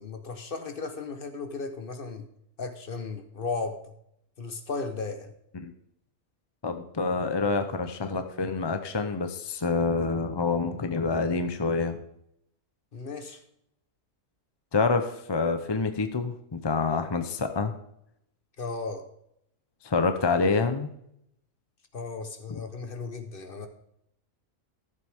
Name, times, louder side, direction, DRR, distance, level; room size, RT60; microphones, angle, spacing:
voice 1, 0.0-2.2 2.6-3.9 4.4-5.3 12.9-13.4 18.6-19.1 21.9-23.7, left 4 dB, 45° left, 7 dB, 1.2 m, -35 dB
voice 2, 6.6-12.0 14.7-17.7 19.8-20.9, left 4 dB, 30° left, 7 dB, 0.5 m, -27 dB
14.0 x 7.7 x 3.6 m, 0.76 s
omnidirectional pair, 1.4 m